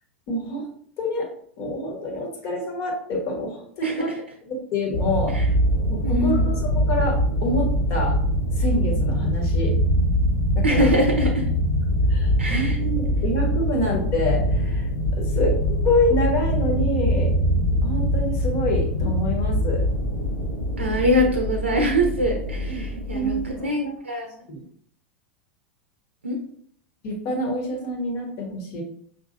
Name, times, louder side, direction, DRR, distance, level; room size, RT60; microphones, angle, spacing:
voice 1, 0.3-0.7 1.0-1.3 1.6-4.1 4.4-5.3 5.9-8.2 8.6-9.7 10.5-10.9 12.1-15.6 15.8-17.3 17.8-19.8 22.7-23.4 23.8-23.9 24.5-24.6 27.0-28.8, left 1 dB, 45° left, 1 dB, 1.4 m, -27 dB
sound 1, 4.9-23.7, equal, 75° left, 1.8 m, -23 dB
voice 2, 6.0-6.5 10.6-11.4 12.4-12.8 20.8-23.3 23.6-24.4 26.2-26.4, equal, 80° right, 3 dB, 0.6 m, -23 dB
5.5 x 3.3 x 2.6 m, 0.62 s
figure-of-eight pair, 85°, 6 cm